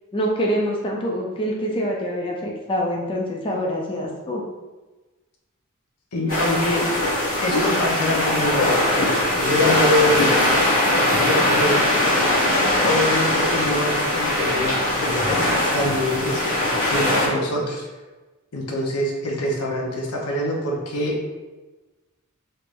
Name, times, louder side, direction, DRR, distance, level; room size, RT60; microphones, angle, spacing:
voice 1, 0.1-4.4, equal, 25° left, -1 dB, 0.4 m, -25 dB
voice 2, 6.1-7.1 7.4-10.3 11.3-11.8 12.8-15.5 15.7-16.4 16.9-17.9 18.5-21.2, left 1 dB, 85° left, -1 dB, 0.7 m, -24 dB
sound 1, 6.3-17.3, left 1 dB, 40° left, 1.1 m, -21 dB
3.2 x 3.2 x 2.5 m, 1.2 s
head